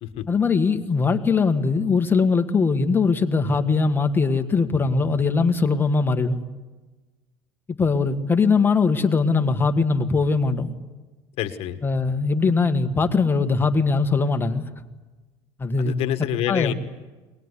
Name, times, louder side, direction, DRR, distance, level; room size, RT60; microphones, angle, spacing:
voice 1, 0.3-6.4 7.7-10.7 11.8-14.7 15.6-15.9 16.5-16.7, left 4 dB, 15° left, 1.6 m, -21 dB
voice 2, 11.4-11.8 15.8-16.7, left 12 dB, 55° left, 1.5 m, -27 dB
23.0 x 20.0 x 9.8 m
cardioid pair, 130°, 13 cm